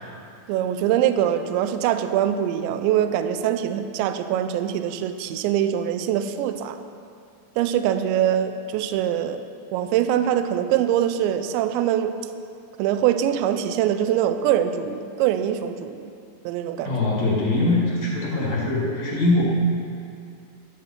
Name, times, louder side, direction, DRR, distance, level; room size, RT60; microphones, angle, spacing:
voice 1, 0.5-6.8 7.6-12.2 12.8-16.1 16.5-17.1, right 10 dB, 85° right, 9 dB, 2.8 m, -23 dB
voice 2, 16.8-19.4, left 2 dB, 50° left, -4 dB, 2.3 m, -22 dB
13.5 x 12.5 x 4.3 m, 2.4 s
omnidirectional pair, 5.4 m